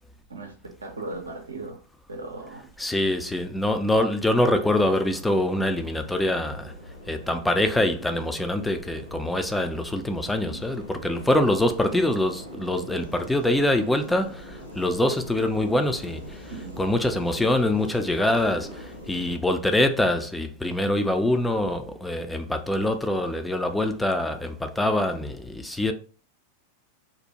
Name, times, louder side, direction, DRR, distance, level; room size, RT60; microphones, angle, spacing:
voice 1, 0.3-1.8 2.1-2.7 10.5-10.6 16.5-16.8, right 2 dB, 75° right, 0.5 m, -37 dB
voice 2, 2.8-6.7 7.1-25.9, left 1 dB, 5° left, 0.3 m, -24 dB
sound 1, 4.6-19.4, equal, 90° left, 0.9 m, -43 dB
2.5 x 2.1 x 2.8 m
figure-of-eight pair, 90°, 0 cm